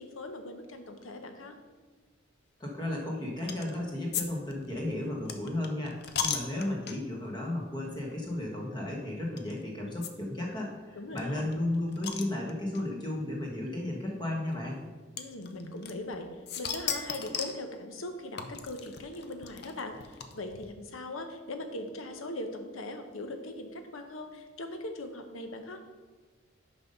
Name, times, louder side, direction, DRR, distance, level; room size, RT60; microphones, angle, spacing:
voice 1, 0.0-1.5 11.0-11.4 15.2-16.3 16.6-25.8, left 2 dB, 85° left, 6 dB, 0.9 m, -40 dB
voice 2, 2.6-14.8, left 1 dB, 20° left, -1 dB, 1.4 m, -34 dB
sound 1, 3.5-3.8 4.1-4.3 4.5-7.2 7.8-8.0 8.2-8.3 9.4-9.5 10.0-10.1 10.4-10.5 10.7-10.8 11.2-12.8 13.7-13.8 15.2-16.2 16.5-17.6 18.4-20.7, left 7 dB, 50° left, 0.5 m, -36 dB
5.8 x 5.4 x 5.3 m, 1.3 s
head